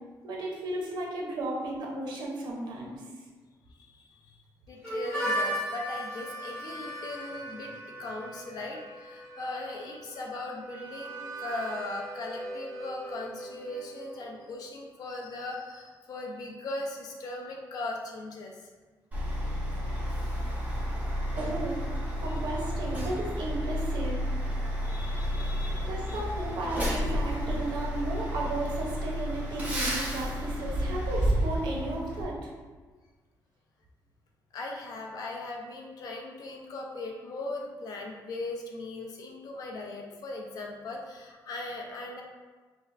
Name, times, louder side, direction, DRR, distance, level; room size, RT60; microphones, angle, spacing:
voice 1, 0.2-2.9 21.4-21.9 22.2-24.3 25.6-32.5, right 2 dB, 80° right, -2 dB, 0.8 m, -34 dB
voice 2, 3.7-18.7 22.2-22.3 24.8-26.2 34.5-42.2, left 2 dB, 60° left, 0 dB, 0.6 m, -39 dB
Harmonica, 4.8-14.4, right 1 dB, 10° left, 1.1 m, -37 dB
Truck, 19.1-32.2, equal, 20° right, 0.7 m, -31 dB
5.0 x 2.1 x 2.5 m, 1.4 s
wide cardioid pair, 170°, 7 cm